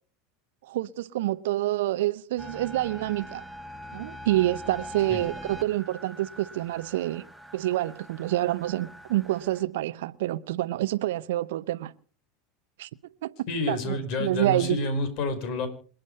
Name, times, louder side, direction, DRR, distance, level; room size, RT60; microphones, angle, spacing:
voice 1, 0.6-3.4 3.9-7.3 7.5-11.9 12.8-12.9 13.2-13.3 13.7-14.8, right 15 dB, 65° right, 0.8 m, -27 dB
sound 1, 2.4-9.6, equal, 5° right, 2.3 m, -43 dB
voice 2, 13.5-15.7, left 2 dB, 55° left, 5.2 m, -29 dB
27.5 x 9.5 x 5.4 m
figure-of-eight pair, 80°, 0 cm